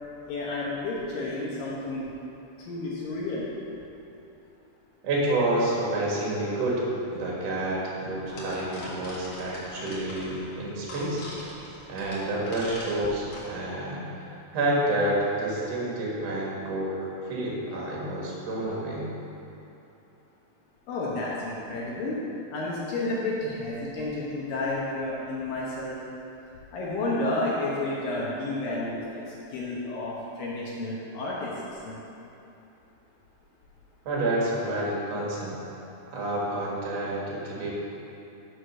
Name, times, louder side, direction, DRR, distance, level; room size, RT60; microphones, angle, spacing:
voice 1, 0.3-2.1 2.7-3.5 20.9-22.2 22.5-26.0 26.7-29.3 29.5-31.5 31.8-32.0, left 2 dB, 70° left, -5 dB, 2.4 m, -31 dB
voice 2, 5.0-6.8 7.1-11.2 11.9-17.0 17.2-19.1 34.0-35.6 36.1-37.7, right 1 dB, 50° right, -4 dB, 2.1 m, -29 dB
sound 1, 8.2-13.5, left 1 dB, 55° left, 2.1 m, -42 dB
6.6 x 6.4 x 6.4 m, 2.9 s
omnidirectional pair, 4.9 m